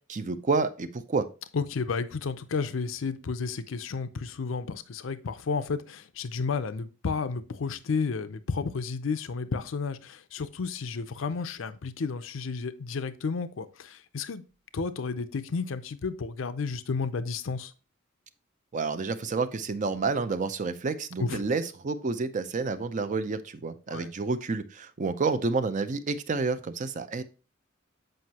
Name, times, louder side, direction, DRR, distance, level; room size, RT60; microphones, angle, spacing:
voice 1, 0.1-1.3 18.7-27.2, right 4 dB, 40° right, 0.5 m, -29 dB
voice 2, 1.5-14.4 14.7-17.7 21.2-21.4 23.9-24.1, left 4 dB, 70° left, 0.5 m, -32 dB
7.7 x 5.3 x 2.8 m
head